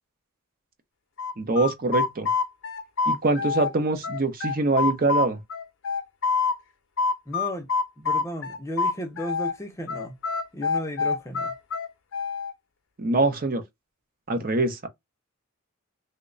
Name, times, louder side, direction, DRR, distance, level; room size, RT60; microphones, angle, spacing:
sound 1, 1.2-3.7 4.0-6.6 7.0-9.5 9.9-12.5, left 4 dB, 60° left, 0.6 m, -26 dB
voice 1, 1.4-2.3 3.1-5.4 13.0-13.6 14.3-14.9, right 2 dB, 40° right, 0.6 m, -24 dB
voice 2, 7.3-7.7 8.0-10.2 10.5-11.5, equal, 15° left, 0.5 m, -34 dB
3.0 x 2.2 x 3.6 m
head